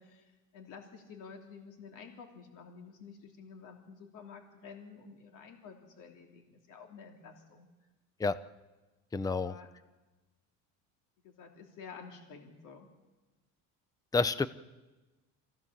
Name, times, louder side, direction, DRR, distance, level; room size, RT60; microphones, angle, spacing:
voice 1, 0.0-7.7 9.3-9.7 11.2-12.9, left 5 dB, 65° left, 3 dB, 3.0 m, -51 dB
voice 2, 9.1-9.5 14.1-14.5, left 4 dB, 10° left, 14 dB, 0.6 m, -29 dB
27.0 x 15.0 x 7.3 m, 1.2 s
cardioid pair, 125°, 34 cm